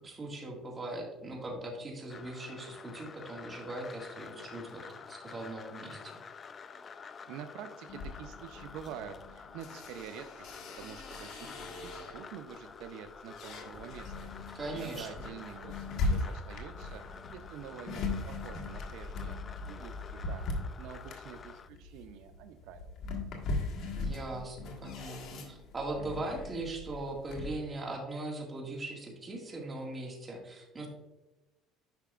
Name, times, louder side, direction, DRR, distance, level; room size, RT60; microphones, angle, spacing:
voice 1, 0.0-6.1 14.5-15.1 23.8-30.9, right 2 dB, 20° right, -1 dB, 1.9 m, -40 dB
sound 1, 2.1-21.7, left 5 dB, 30° left, 0.4 m, -49 dB
voice 2, 7.3-19.4 19.7-20.5 20.8-22.9, right 9 dB, 75° right, 8 dB, 0.5 m, -47 dB
sound 2, 7.9-12.4 12.9-27.6, left 3 dB, 55° left, 1.5 m, -39 dB
10.5 x 5.8 x 2.4 m, 1.0 s
cardioid pair, 130°, 0 cm